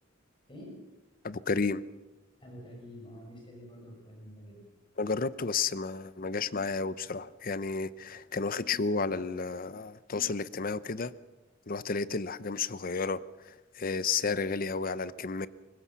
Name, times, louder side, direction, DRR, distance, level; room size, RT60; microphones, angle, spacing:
voice 1, 0.5-0.8 2.4-4.7, equal, 25° left, 0 dB, 6.3 m, -47 dB
voice 2, 1.2-1.8 5.0-11.2 11.7-15.5, left 4 dB, 50° left, 17 dB, 0.7 m, -32 dB
23.0 x 19.5 x 5.8 m, 1.2 s
head